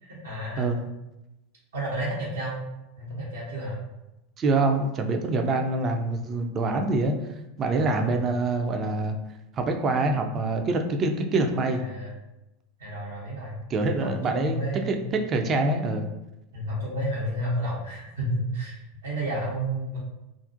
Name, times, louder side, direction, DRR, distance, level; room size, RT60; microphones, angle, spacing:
voice 1, 0.0-0.8 1.7-2.6 3.0-3.8 7.7-8.2 11.7-12.1 12.8-13.6 14.0-15.0 16.5-20.0, right 1 dB, 85° right, -6 dB, 0.8 m, -31 dB
voice 2, 4.4-7.1 7.6-9.2 9.6-11.8 13.7-16.1, right 2 dB, 35° right, 4 dB, 0.3 m, -25 dB
2.5 x 2.0 x 2.6 m, 0.94 s
hypercardioid pair, 90°, 0 cm